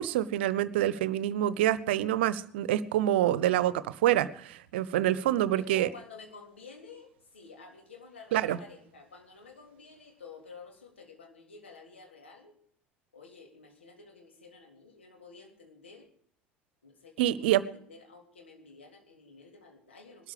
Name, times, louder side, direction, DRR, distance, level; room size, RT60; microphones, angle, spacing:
voice 1, 0.0-5.9 8.3-8.6 17.2-17.6, right 12 dB, 70° right, 17 dB, 0.9 m, -26 dB
voice 2, 5.6-12.5 13.1-16.1 16.8-20.3, left 4 dB, 80° left, 2 dB, 3.5 m, -51 dB
20.5 x 13.0 x 5.0 m, 0.64 s
figure-of-eight pair, 65°, 6 cm